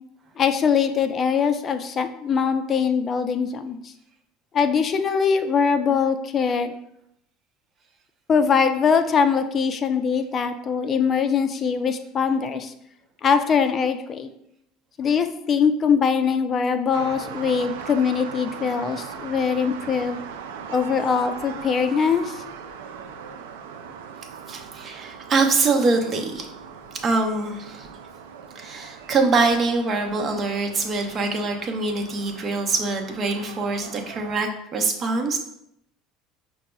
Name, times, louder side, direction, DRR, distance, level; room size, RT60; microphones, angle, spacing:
voice 1, 0.4-3.9 4.5-6.7 8.3-12.7 13.2-14.3 15.0-20.2 20.7-22.4, left 6 dB, 40° left, 8 dB, 0.3 m, -22 dB
sound 1, 16.9-34.4, right 6 dB, 85° right, 0.3 m, -39 dB
voice 2, 24.5-26.5 27.0-27.9 28.5-35.4, right 3 dB, 40° right, 3 dB, 0.7 m, -24 dB
5.7 x 2.0 x 2.2 m, 0.77 s
hypercardioid pair, 85°, 0 cm